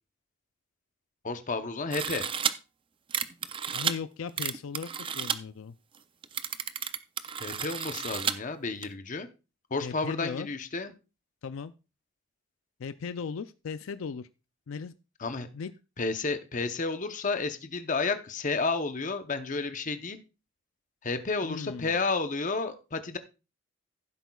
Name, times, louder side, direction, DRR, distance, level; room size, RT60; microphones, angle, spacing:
voice 1, 1.2-2.2 7.4-9.3 9.7-10.9 15.2-15.5 16.0-20.2 21.0-23.2, left 3 dB, 40° left, 9 dB, 0.8 m, -31 dB
sound 1, 1.9-2.5 3.1-3.9 4.4-5.4 5.9-6.0 6.2-8.3 8.8-8.9, right 7 dB, 25° right, 0.4 m, -31 dB
voice 2, 3.7-4.9 5.1-5.7 9.8-10.5 11.4-11.7 12.8-14.3 14.7-14.9 15.5-15.7 21.4-22.0, left 5 dB, 75° left, 13 dB, 0.4 m, -37 dB
15.0 x 8.0 x 2.3 m, 0.30 s
head